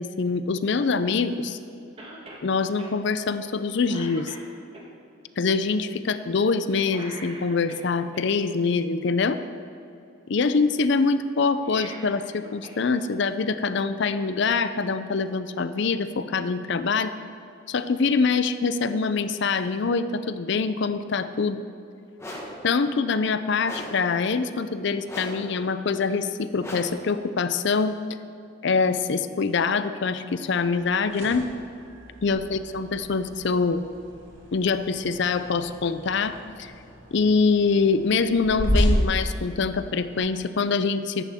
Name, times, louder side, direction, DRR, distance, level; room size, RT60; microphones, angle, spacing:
voice 1, 0.0-1.6 2.4-4.3 5.4-9.4 10.3-17.2 17.7-21.6 22.6-28.0 28.6-31.4 32.2-33.8 34.5-36.7 37.1-41.2, left 4 dB, 55° left, 12 dB, 0.5 m, -24 dB
Cough, 2.0-2.5 2.8-2.9 3.4-3.6 3.9-4.9 6.8-8.2 11.5-12.8 13.1-13.2 14.3-14.4, right 1 dB, 25° right, 1.6 m, -42 dB
sound 1, 22.2-22.6 23.6-24.1 25.1-25.5 26.6-27.1, equal, 15° left, 1.4 m, -37 dB
sound 2, 30.8-40.2, equal, 75° right, 2.7 m, -31 dB
14.0 x 11.0 x 3.6 m, 2.7 s
head